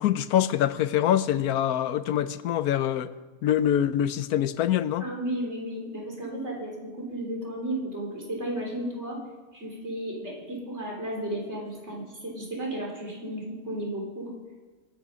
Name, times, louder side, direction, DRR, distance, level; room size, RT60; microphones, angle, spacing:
voice 1, 0.0-3.1 3.4-5.1, left 11 dB, 85° left, 14 dB, 1.2 m, -24 dB
voice 2, 5.0-9.2 9.5-14.3, right 1 dB, 45° right, -2 dB, 4.0 m, -34 dB
22.0 x 9.0 x 6.1 m, 1.3 s
omnidirectional pair, 1.6 m